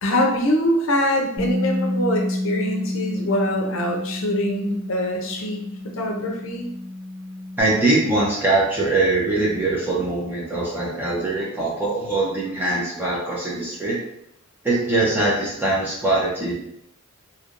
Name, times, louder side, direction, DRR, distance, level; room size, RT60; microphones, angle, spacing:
voice 1, 0.0-6.7, left 1 dB, 65° left, 1 dB, 0.6 m, -24 dB
Bass guitar, 1.4-7.6, left 1 dB, 40° right, 1.4 m, -29 dB
voice 2, 7.6-14.0 14.6-16.6, right 2 dB, 10° right, -6 dB, 0.7 m, -22 dB
3.3 x 2.8 x 2.5 m, 0.76 s
head